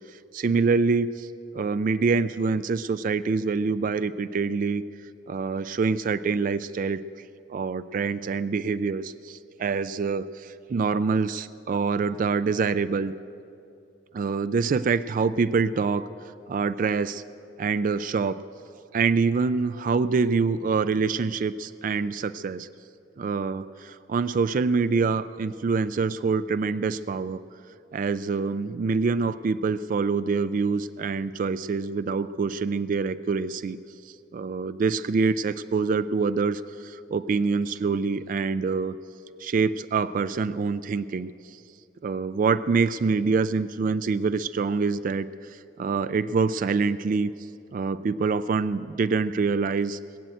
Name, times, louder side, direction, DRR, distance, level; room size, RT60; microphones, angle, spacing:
voice 1, 0.3-1.3 1.5-4.8 5.3-7.0 7.5-13.1 14.1-16.1 16.5-17.2 17.6-18.4 18.9-22.7 23.2-27.4 27.9-33.8 34.3-38.9 39.4-41.3 42.0-47.3 47.7-50.0, right 4 dB, 45° right, 14 dB, 0.3 m, -25 dB
20.5 x 7.8 x 9.0 m, 2.6 s
head